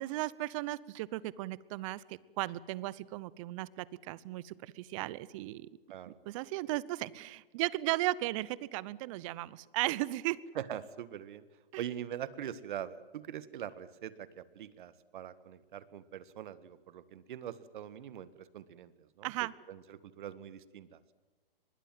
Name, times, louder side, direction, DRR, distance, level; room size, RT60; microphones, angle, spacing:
voice 1, 0.0-5.7 6.3-10.4 11.7-11.8 19.2-19.5, right 18 dB, 35° right, 21 dB, 0.9 m, -36 dB
voice 2, 10.5-11.4 11.8-19.3 19.7-21.0, right 10 dB, 55° right, 15 dB, 1.7 m, -43 dB
24.0 x 21.5 x 7.7 m, 1.3 s
hypercardioid pair, 130°, 29 cm